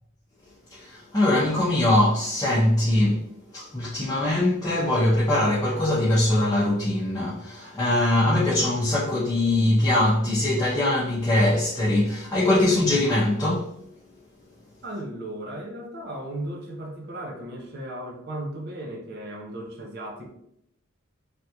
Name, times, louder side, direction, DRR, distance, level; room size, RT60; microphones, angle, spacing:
voice 1, 0.7-3.2 3.5-13.7, left 1 dB, 20° left, 0.6 m, -22 dB
voice 2, 14.8-20.3, right 1 dB, 55° right, 0.7 m, -36 dB
3.4 x 2.4 x 2.8 m
head